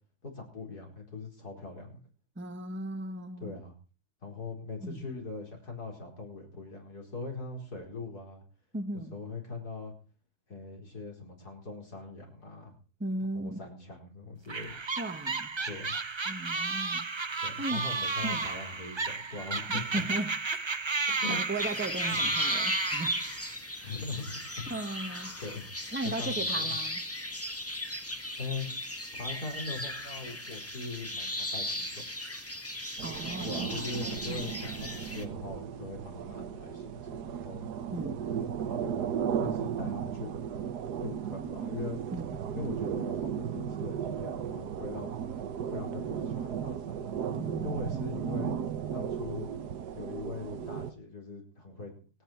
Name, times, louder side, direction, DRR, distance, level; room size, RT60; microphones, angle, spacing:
voice 1, 0.2-2.0 3.4-3.7 4.2-8.4 9.1-9.9 10.5-12.7 13.3-14.7 15.6-16.0 17.4-20.0 21.2-21.4 22.1-22.3 23.8-24.7 25.4-26.8 28.4-28.7 29.1-32.0 33.4-37.7 38.3-40.7 41.0-42.0 42.5-45.2 45.7-46.8 47.6-48.5 48.9-49.5 49.9-51.9, left 3 dB, 75° left, 1 dB, 5.1 m, -41 dB
voice 2, 2.4-3.5 4.8-5.1 8.7-9.1 13.0-13.6 15.0-15.5 16.3-17.1 17.6-17.8 18.2-18.5 19.7-20.3 21.3-23.3 23.8-24.0 24.7-25.4 25.9-27.0 33.0-34.0 34.3-34.5 37.9-38.2 42.1-42.4 47.4-48.0, right 2 dB, 10° right, 7 dB, 1.1 m, -37 dB
sound 1, 14.5-23.5, right 4 dB, 35° right, 0.4 m, -33 dB
sound 2, 21.6-35.2, left 1 dB, 10° left, 1.5 m, -36 dB
sound 3, 33.0-50.9, right 8 dB, 80° right, 1.6 m, -35 dB
26.5 x 9.5 x 4.5 m, 0.36 s
omnidirectional pair, 1.7 m